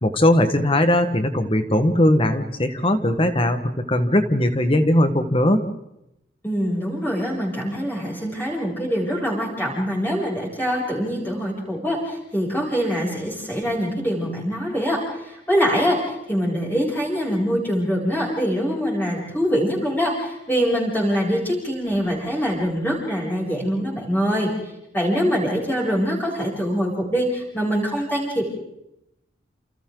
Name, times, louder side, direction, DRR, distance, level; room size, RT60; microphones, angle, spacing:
voice 1, 0.0-3.6 3.9-5.6, left 1 dB, 30° left, 8 dB, 1.6 m, -19 dB
voice 2, 6.4-24.5 24.9-28.5, equal, 10° left, -4 dB, 7.5 m, -24 dB
29.0 x 28.5 x 4.0 m, 0.84 s
head